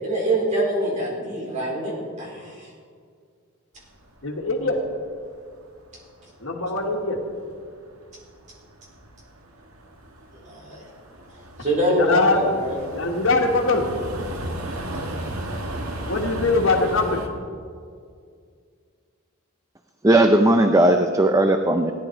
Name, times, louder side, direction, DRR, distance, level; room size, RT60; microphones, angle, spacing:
voice 1, 0.0-2.7 10.3-10.8 11.6-12.9, right 1 dB, 35° right, -4 dB, 4.3 m, -25 dB
sound 1, 3.8-6.0 6.3-17.3, right 1 dB, 85° right, 1.6 m, -35 dB
voice 2, 4.2-4.8 6.4-7.2 11.9-12.4 12.9-13.8 16.1-17.2, left 3 dB, 65° left, 2 dB, 1.6 m, -22 dB
voice 3, 20.0-21.9, right 1 dB, 15° right, 6 dB, 0.5 m, -17 dB
17.0 x 10.5 x 4.5 m, 2.1 s
head